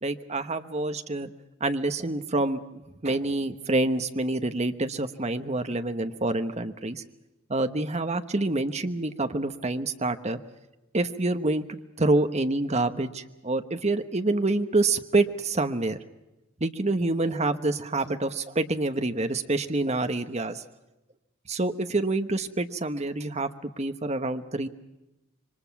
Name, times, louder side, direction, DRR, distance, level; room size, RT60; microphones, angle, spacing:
voice 1, 0.0-1.3 1.6-7.0 7.5-10.4 10.9-16.0 16.6-20.6 21.5-23.5 23.8-24.7, right 2 dB, 35° right, 9 dB, 1.1 m, -27 dB
27.5 x 23.5 x 5.9 m, 0.98 s
head